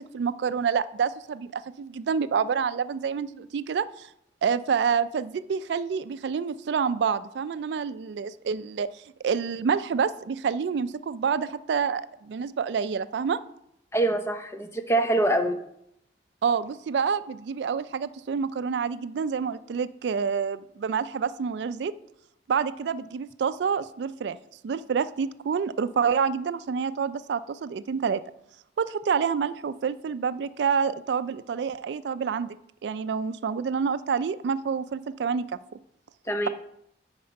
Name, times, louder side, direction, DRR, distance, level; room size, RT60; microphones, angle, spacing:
voice 1, 0.0-4.1 4.4-8.9 9.2-13.4 16.4-22.0 22.5-24.4 24.6-28.2 28.8-32.5 32.8-35.5, right 6 dB, 70° right, 15 dB, 0.3 m, -28 dB
voice 2, 13.9-15.6 36.3-36.5, right 1 dB, 15° left, 6 dB, 0.6 m, -24 dB
9.4 x 4.3 x 5.3 m, 0.76 s
head